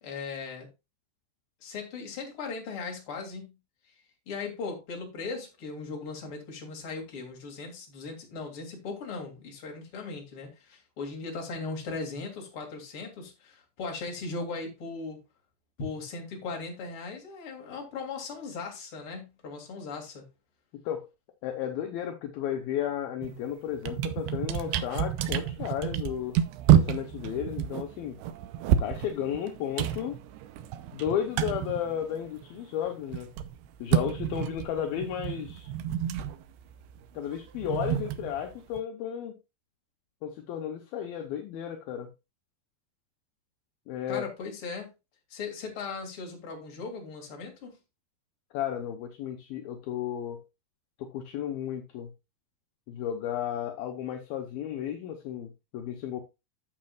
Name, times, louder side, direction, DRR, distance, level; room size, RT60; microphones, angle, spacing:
voice 1, 0.0-0.7 1.6-3.5 4.3-15.2 15.8-20.2 44.1-44.9 45.3-47.8, left 4 dB, 35° left, 2.7 m, -38 dB
voice 2, 20.7-21.1 21.4-26.4 26.7-28.2 28.8-30.2 30.9-33.3 33.8-35.7 37.1-39.4 40.2-42.1 43.9-44.3 48.5-50.4 51.0-52.1 52.9-56.2, left 10 dB, 75° left, 2.4 m, -33 dB
sound 1, 23.2-23.4 23.7-32.6 32.9-38.8, right 10 dB, 80° right, 2.5 m, -29 dB
12.0 x 7.4 x 2.3 m
omnidirectional pair, 4.9 m